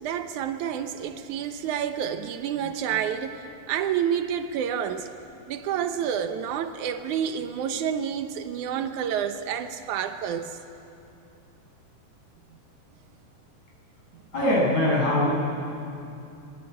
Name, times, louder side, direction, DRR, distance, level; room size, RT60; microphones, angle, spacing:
voice 1, 0.0-5.1 5.5-10.6 14.1-14.2, right 8 dB, 75° right, 1.9 m, -29 dB
voice 2, 14.3-15.4, left 1 dB, 40° left, 8.3 m, -22 dB
25.5 x 21.5 x 9.8 m
omnidirectional pair, 4.8 m